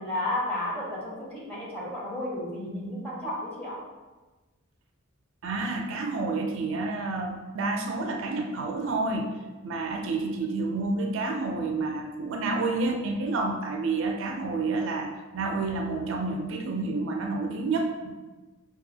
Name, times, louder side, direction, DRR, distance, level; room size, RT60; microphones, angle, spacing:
voice 1, 0.0-3.8, left 1 dB, 10° left, -7 dB, 0.9 m, -32 dB
voice 2, 5.4-9.3 9.6-18.1, right 3 dB, 60° right, 3 dB, 0.4 m, -29 dB
5.4 x 2.4 x 2.7 m, 1.2 s
head